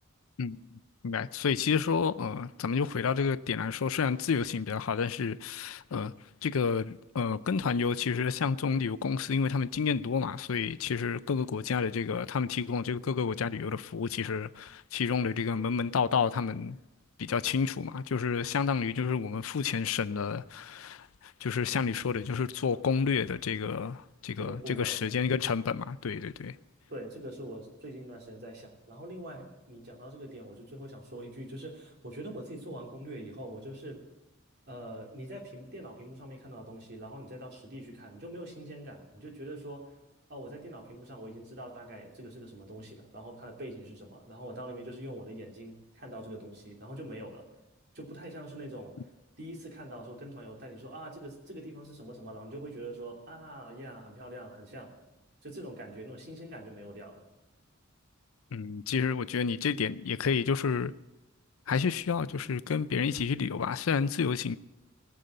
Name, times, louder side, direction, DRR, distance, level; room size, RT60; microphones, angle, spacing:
voice 1, 1.0-6.1 6.4-16.8 17.2-26.6 58.5-60.9 61.7-64.6, left 6 dB, 80° left, 0.5 m, -30 dB
voice 2, 24.4-25.0 26.9-34.0 34.7-39.9 40.3-47.5 47.9-49.0 49.4-54.9 55.4-57.3, right 1 dB, 50° right, 3.0 m, -44 dB
20.0 x 6.8 x 7.7 m
head